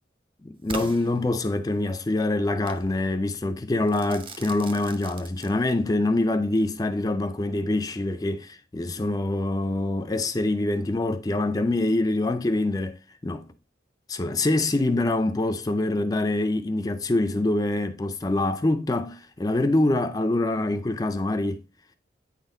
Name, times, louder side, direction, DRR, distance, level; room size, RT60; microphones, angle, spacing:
voice 1, 0.4-13.5 14.1-21.6, left 2 dB, 20° left, 0.4 m, -25 dB
Crackle / Fireworks, 0.7-1.8 2.7-2.9 3.9-5.9, right 3 dB, 30° right, 0.6 m, -40 dB
8.8 x 4.0 x 3.8 m
head